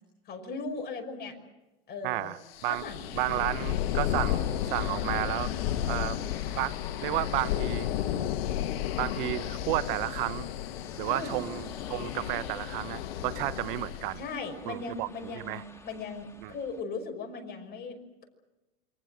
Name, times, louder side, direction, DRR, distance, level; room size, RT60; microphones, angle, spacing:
voice 1, 0.3-1.4 1.9-2.4 2.7-3.1 11.0-11.4 14.2-18.2, left 4 dB, 30° left, 4 dB, 5.7 m, -38 dB
voice 2, 2.0-2.4 2.6-2.9 3.1-5.5 5.9-6.2 6.5-7.9 9.0-10.5 11.0-14.2 14.6-15.1 15.4-15.6 16.4-16.5, right 19 dB, 55° right, 15 dB, 0.9 m, -32 dB
sound 1, 2.5-14.3, left 11 dB, 70° left, 1.6 m, -33 dB
sound 2, 3.7-16.8, left 2 dB, 10° left, 1.8 m, -50 dB
28.5 x 24.0 x 6.4 m, 1.1 s
supercardioid pair, 130°, 31 cm